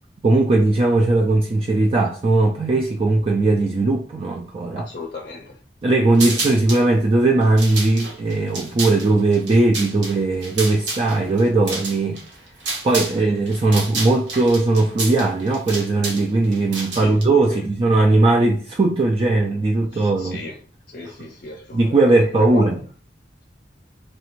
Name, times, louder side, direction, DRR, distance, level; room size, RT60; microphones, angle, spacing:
voice 1, 0.2-4.9 5.8-12.2 12.8-20.4 21.1-21.2 21.7-22.8, right 2 dB, 35° right, 0.3 m, -18 dB
voice 2, 4.8-5.6 6.2-6.4 16.9-17.2 17.5-17.6 19.9-20.6 20.9-21.8 22.4-22.8, left 3 dB, 55° left, 0.5 m, -35 dB
sound 1, 6.1-6.9 7.4-13.2 13.5-17.2, right 2 dB, 80° right, 1.1 m, -30 dB
3.2 x 2.5 x 3.0 m
head